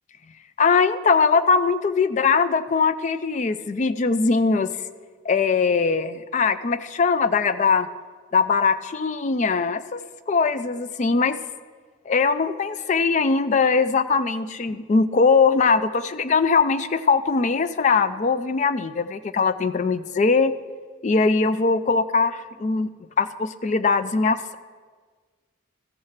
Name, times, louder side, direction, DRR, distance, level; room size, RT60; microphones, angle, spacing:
voice 1, 0.6-4.7 5.2-7.9 8.3-10.0 10.3-11.4 12.1-20.5 21.0-22.3 22.6-22.9 23.2-24.6, left 4 dB, 35° left, 13 dB, 0.3 m, -21 dB
14.5 x 4.8 x 5.7 m, 1.5 s
head